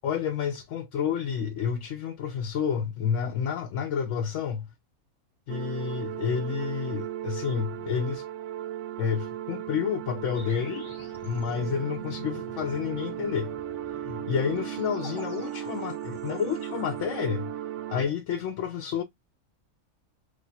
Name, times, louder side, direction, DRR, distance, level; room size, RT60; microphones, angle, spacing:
voice 1, 0.0-4.7 5.5-8.2 9.0-10.8 11.2-13.5 14.0-17.5 17.9-19.0, left 7 dB, 65° left, 0.9 m, -30 dB
sound 1, 5.5-18.1, right 12 dB, 65° right, 0.8 m, -36 dB
sound 2, 10.3-17.3, left 2 dB, 30° left, 0.6 m, -46 dB
2.6 x 2.4 x 4.0 m
omnidirectional pair, 1.5 m